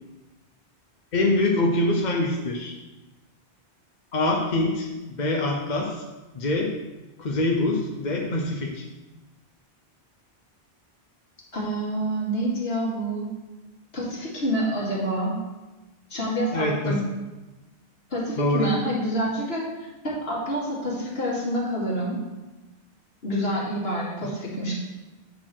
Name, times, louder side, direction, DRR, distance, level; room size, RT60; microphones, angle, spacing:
voice 1, 1.1-2.8 4.1-6.0 6.3-6.7 7.2-8.9 16.5-17.0 18.4-18.7 24.2-24.3, left 2 dB, 45° left, 1 dB, 0.9 m, -24 dB
voice 2, 11.5-13.3 13.9-15.4 16.1-17.0 18.1-19.7 20.0-22.2 23.2-24.8, right 1 dB, 65° left, -5 dB, 2.4 m, -27 dB
8.5 x 4.1 x 6.1 m, 1.1 s
omnidirectional pair, 1.1 m